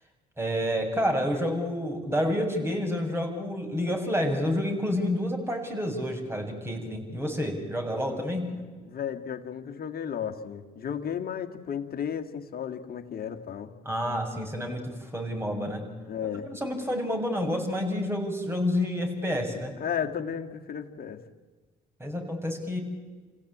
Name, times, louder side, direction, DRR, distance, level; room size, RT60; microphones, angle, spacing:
voice 1, 0.4-8.5 13.9-15.8 16.4-19.7 22.0-22.8, left 1 dB, 15° right, 2 dB, 7.1 m, -29 dB
voice 2, 8.5-13.7 16.1-16.5 19.8-21.2, left 8 dB, 55° left, 5 dB, 2.2 m, -34 dB
28.0 x 16.5 x 8.9 m, 1.4 s
supercardioid pair, 60°, 18 cm